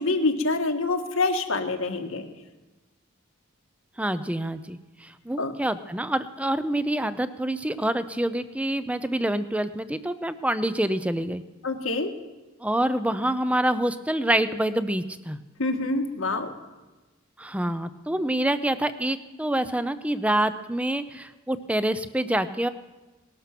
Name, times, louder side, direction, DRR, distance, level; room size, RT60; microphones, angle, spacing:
voice 1, 0.0-2.3 5.4-5.5 11.6-12.1 15.6-16.5, left 3 dB, 80° left, 5 dB, 1.6 m, -26 dB
voice 2, 4.0-11.4 12.6-15.4 17.4-22.7, right 1 dB, 5° right, 12 dB, 0.6 m, -26 dB
19.0 x 12.5 x 6.0 m, 1.2 s
head